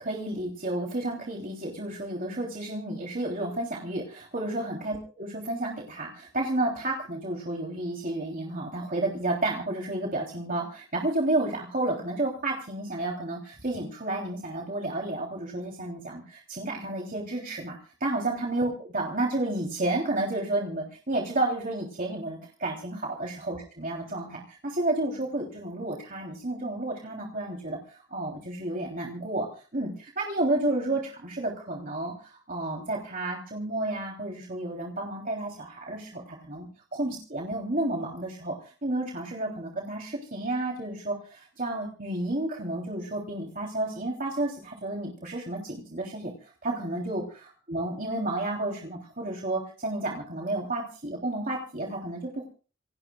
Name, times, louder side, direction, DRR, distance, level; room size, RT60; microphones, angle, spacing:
voice 1, 0.0-29.5 29.7-52.4, right 2 dB, 50° right, -1 dB, 3.3 m, -31 dB
27.5 x 18.5 x 2.4 m, 0.38 s
head